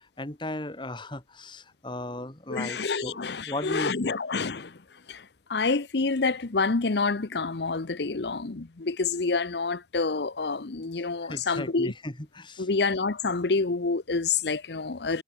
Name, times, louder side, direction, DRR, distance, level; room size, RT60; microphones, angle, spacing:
voice 1, 0.0-3.9 11.2-12.7, left 1 dB, 25° left, 2.6 m, -36 dB
voice 2, 2.5-4.8 5.1-11.9 12.6-15.2, left 4 dB, 60° left, 0.8 m, -28 dB
head